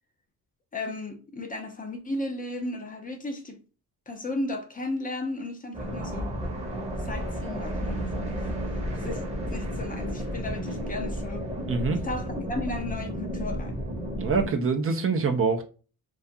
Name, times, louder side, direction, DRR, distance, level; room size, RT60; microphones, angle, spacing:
voice 1, 0.7-3.6 4.1-6.3 7.0-8.4 8.7-11.4 12.0-13.8, left 2 dB, 25° left, 0.5 m, -35 dB
sound 1, 5.7-14.5, equal, 20° right, 0.8 m, -32 dB
voice 2, 11.7-12.0 14.2-15.6, right 4 dB, 40° right, 0.4 m, -25 dB
2.4 x 2.3 x 2.6 m
cardioid pair, 115°, 35 cm